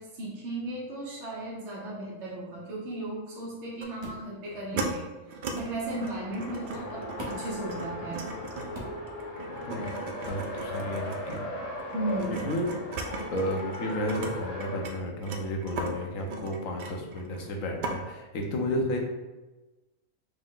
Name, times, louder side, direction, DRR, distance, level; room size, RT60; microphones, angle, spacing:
voice 1, 0.0-5.1 5.5-8.3 11.9-12.4, right 1 dB, 60° right, -5 dB, 1.1 m, -36 dB
sound 1, 3.8-3.9 4.5-4.9 5.3-5.5 5.9-14.3 14.6-17.5 17.8-18.0, right 3 dB, 80° right, 0.4 m, -37 dB
sound 2, 4.0-4.3 5.6-5.8 7.2-7.5 8.7-9.1 10.2-10.5, equal, 25° right, 0.6 m, -40 dB
Race car auto racing, 5.6-14.9, left 1 dB, 45° left, 0.5 m, -38 dB
voice 2, 9.6-11.5 12.3-12.7 13.3-19.0, left 1 dB, 75° left, 2 dB, 1.1 m, -32 dB
5.0 x 2.1 x 3.7 m, 1.1 s
omnidirectional pair, 1.4 m